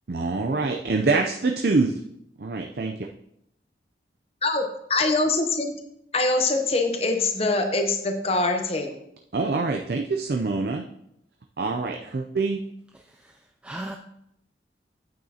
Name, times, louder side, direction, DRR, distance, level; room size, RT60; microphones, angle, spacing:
voice 1, 0.1-1.9 2.4-3.1 9.3-10.8 11.6-12.6, right 3 dB, 60° right, 3 dB, 0.5 m, -25 dB
voice 2, 4.4-5.7 6.1-9.0, left 2 dB, 35° left, 5 dB, 0.8 m, -24 dB
voice 3, 12.9-14.0, right 1 dB, 5° right, 3 dB, 0.3 m, -39 dB
9.2 x 8.1 x 2.8 m, 0.77 s
head